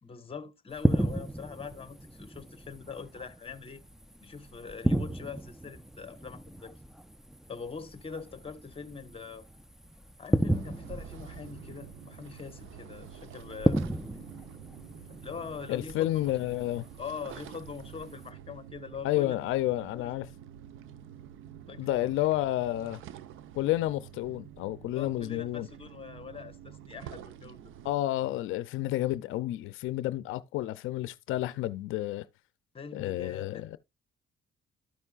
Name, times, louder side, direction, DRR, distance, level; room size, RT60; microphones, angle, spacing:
voice 1, 0.0-3.8 4.2-6.8 7.5-9.5 10.2-13.8 15.2-16.4 17.0-19.4 19.9-20.1 21.7-22.1 24.9-27.7 32.7-33.6, left 5 dB, 30° left, 1.1 m, -43 dB
sound 1, 0.7-18.3, right 1 dB, ahead, 0.4 m, -34 dB
sound 2, 10.5-27.9, right 9 dB, 85° right, 0.7 m, -48 dB
voice 2, 15.7-16.8 19.0-20.3 21.8-23.0 23.5-25.7 27.8-32.3 32.9-33.8, left 15 dB, 90° left, 0.5 m, -30 dB
13.0 x 5.4 x 2.4 m
cardioid pair, 90°, 20 cm